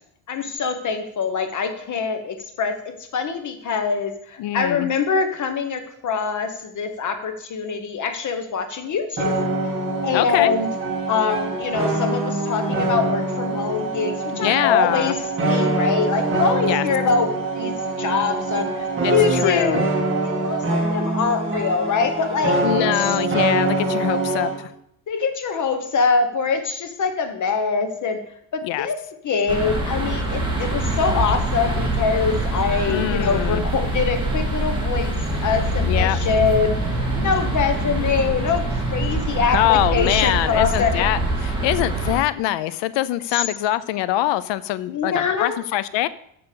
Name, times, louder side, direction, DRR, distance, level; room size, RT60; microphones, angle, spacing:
voice 1, 0.3-9.5 10.0-10.7 11.1-19.8 20.2-23.1 25.1-28.2 28.5-29.0 29.2-35.2 35.4-36.8 37.1-41.0 43.3-43.5 44.9-45.6, left 5 dB, 40° left, 7 dB, 1.2 m, -24 dB
voice 2, 4.4-4.9 10.1-10.5 14.3-15.1 16.7-16.8 19.0-19.8 22.5-24.7 28.6-28.9 32.9-33.6 35.8-36.2 39.4-46.1, left 14 dB, 65° left, 16 dB, 0.6 m, -23 dB
sound 1, 9.2-24.6, right 2 dB, 25° right, 2.4 m, -24 dB
sound 2, 29.5-42.2, right 1 dB, 10° right, 2.2 m, -24 dB
6.9 x 6.7 x 6.8 m, 0.71 s
cardioid pair, 150°, 47 cm